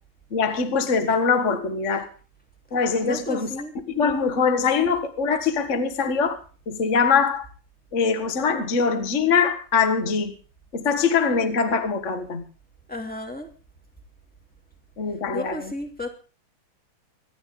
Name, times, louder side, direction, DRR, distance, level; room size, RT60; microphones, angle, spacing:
voice 1, 0.3-2.1 2.7-3.5 3.9-6.4 6.7-7.4 7.9-10.3 10.7-12.4 15.0-15.7, left 5 dB, 40° left, 8 dB, 1.0 m, -22 dB
voice 2, 3.0-3.7 12.9-13.5 15.3-16.1, left 1 dB, 5° left, 3 dB, 2.1 m, -33 dB
25.0 x 11.0 x 3.9 m, 0.37 s
omnidirectional pair, 3.7 m